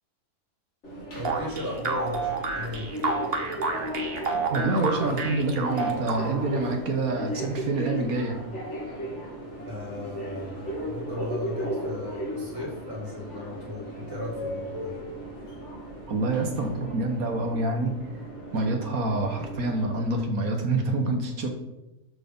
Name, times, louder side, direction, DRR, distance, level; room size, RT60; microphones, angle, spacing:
Subway metro underground, 0.8-20.2, equal, 50° left, 2.6 m, -36 dB
voice 1, 1.1-2.9 9.6-10.5 10.8-14.9, left 1 dB, 90° right, -4 dB, 3.8 m, -35 dB
sound 1, 1.2-6.6, right 4 dB, 45° right, 1.3 m, -30 dB
voice 2, 4.5-8.4 16.1-17.9 18.5-21.5, right 2 dB, 70° right, 4 dB, 1.6 m, -27 dB
12.5 x 4.7 x 5.3 m, 0.95 s
omnidirectional pair, 1.6 m